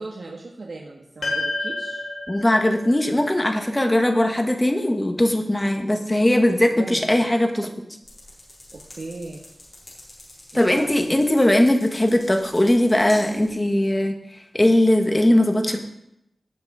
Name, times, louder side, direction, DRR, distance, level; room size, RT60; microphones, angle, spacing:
voice 1, 0.0-2.0 6.7-7.3 8.9-9.4 10.5-11.0, right 2 dB, 70° right, -1 dB, 1.6 m, -37 dB
sound 1, 1.2-5.7, left 2 dB, 85° left, 4.0 m, -32 dB
voice 2, 2.3-7.7 10.5-14.1 14.5-15.8, left 1 dB, 15° left, 4 dB, 1.6 m, -19 dB
sound 2, 8.0-13.6, left 1 dB, 50° left, 5.0 m, -45 dB
18.0 x 6.2 x 5.1 m, 0.80 s
wide cardioid pair, 95°, 0 cm